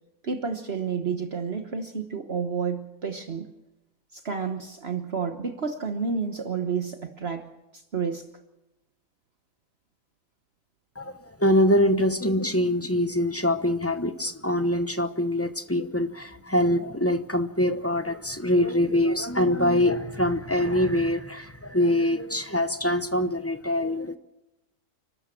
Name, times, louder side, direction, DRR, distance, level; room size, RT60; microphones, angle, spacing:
voice 1, 0.2-3.5 4.1-7.5 7.7-8.2, right 5 dB, 50° right, 6 dB, 1.3 m, -30 dB
voice 2, 11.0-24.2, left 1 dB, 10° left, 9 dB, 0.9 m, -24 dB
29.0 x 13.0 x 7.6 m, 0.99 s
omnidirectional pair, 1.4 m